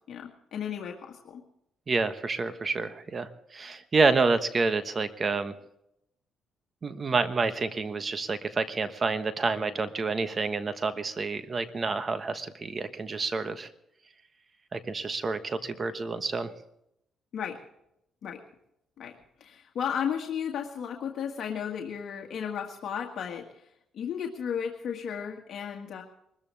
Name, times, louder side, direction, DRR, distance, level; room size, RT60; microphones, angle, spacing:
voice 1, 0.1-1.4 17.3-17.6 18.2-18.4 19.0-19.1 19.4-23.5 23.9-26.0, left 8 dB, 65° left, 1 dB, 1.8 m, -34 dB
voice 2, 1.9-5.5 6.8-13.7 14.7-16.5, right 4 dB, 35° right, 10 dB, 1.3 m, -28 dB
23.5 x 14.0 x 3.4 m, 0.78 s
cardioid pair, 90°, 0 cm